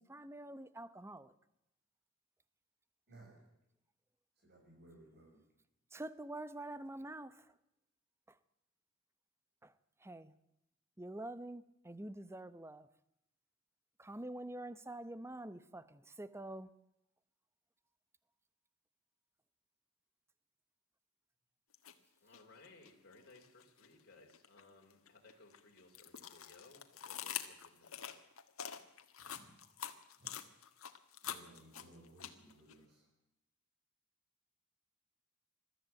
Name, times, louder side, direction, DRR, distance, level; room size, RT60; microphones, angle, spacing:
voice 1, 0.0-1.3 5.9-7.4 9.6-9.7 10.0-10.3 11.0-12.9 14.0-16.7, right 1 dB, 10° right, 15 dB, 0.8 m, -46 dB
voice 2, 3.1-3.5 4.4-5.5 29.2-29.6 30.2-30.3 31.2-33.1, right 1 dB, 50° right, 1 dB, 6.8 m, -60 dB
sound 1, 21.7-21.9 22.3-23.9 24.3-32.7, left 9 dB, 80° left, 1.7 m, -46 dB
voice 3, 22.2-28.2, left 3 dB, 50° left, -1 dB, 3.5 m, -62 dB
22.0 x 13.5 x 9.0 m, 0.84 s
head